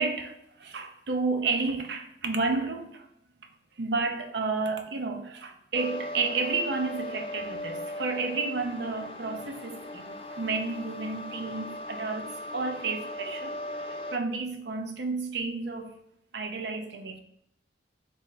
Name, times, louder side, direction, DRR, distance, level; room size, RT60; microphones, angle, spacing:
voice 1, 0.0-3.1 3.8-15.9 16.3-17.2, right 4 dB, 65° right, 0.6 m, -31 dB
sound 1, 5.7-14.1, left 1 dB, 30° left, 0.3 m, -38 dB
3.5 x 3.2 x 4.1 m
head